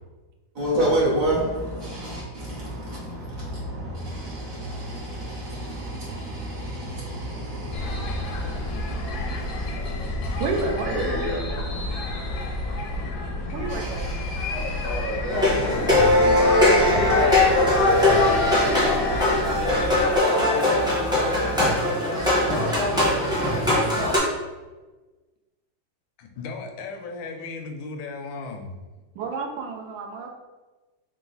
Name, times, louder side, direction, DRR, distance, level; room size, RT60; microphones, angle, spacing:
voice 1, 0.5-19.9 20.3-21.8 22.1-24.2, right 1 dB, 50° right, -6 dB, 1.3 m, -31 dB
sound 1, 7.7-20.2, left 4 dB, 70° left, 0.9 m, -29 dB
voice 2, 10.4-10.9 13.5-14.1 19.4-19.8 29.1-30.4, right 3 dB, 85° right, 2 dB, 1.3 m, -30 dB
sound 2, 15.3-24.2, left 1 dB, 5° right, 0.5 m, -20 dB
voice 3, 26.2-28.7, left 4 dB, 85° left, 4 dB, 1.3 m, -36 dB
3.9 x 2.4 x 3.8 m, 1.2 s
omnidirectional pair, 2.0 m